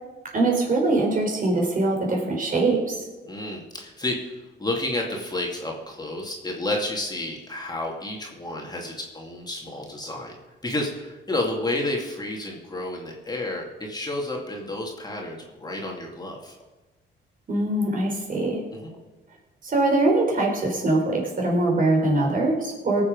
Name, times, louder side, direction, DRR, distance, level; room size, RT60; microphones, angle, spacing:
voice 1, 0.3-3.0 17.5-18.6 19.6-23.0, right 2 dB, 45° right, -1 dB, 4.1 m, -22 dB
voice 2, 3.3-4.3 4.6-10.4 10.6-16.5 18.8-18.9, left 1 dB, 20° left, -1 dB, 2.4 m, -30 dB
18.5 x 7.2 x 5.3 m, 1.2 s
cardioid pair, 90°, 20 cm